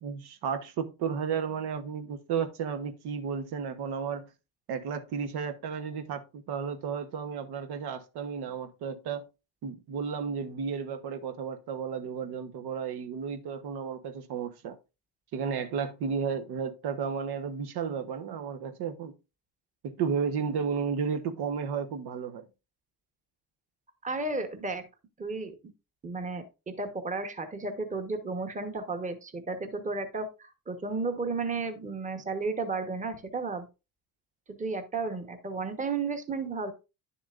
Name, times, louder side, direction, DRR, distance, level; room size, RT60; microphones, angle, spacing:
voice 1, 0.0-4.3 4.7-9.2 9.6-14.8 15.3-19.1 19.8-22.5, right 6 dB, 75° right, 1.1 m, -33 dB
voice 2, 24.0-24.8 25.2-25.5 26.0-33.7 34.6-36.7, right 3 dB, 20° right, 1.1 m, -33 dB
10.5 x 7.1 x 2.5 m
cardioid pair, 140°, 39 cm